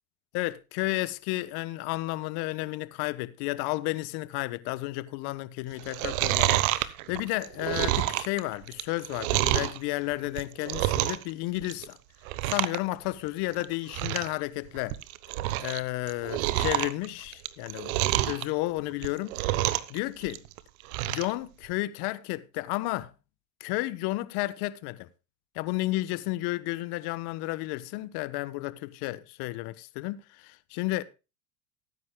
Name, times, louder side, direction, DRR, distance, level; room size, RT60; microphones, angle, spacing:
voice 1, 0.3-12.0 12.4-15.0 15.6-17.9 18.2-19.6 19.9-20.4 21.0-23.1 23.6-25.1 25.5-31.0, left 19 dB, 55° left, 1.1 m, -32 dB
Chewing mastication, 5.8-9.8 10.2-11.3 11.6-11.9 12.3-12.8 13.1-13.2 13.6-13.7 13.9-14.3 14.8-15.8 16.1-18.4 18.9-20.0 20.3-21.3 21.7-21.8, right 16 dB, 70° right, 1.0 m, -28 dB
18.5 x 9.6 x 2.2 m
hypercardioid pair, 100°, 45 cm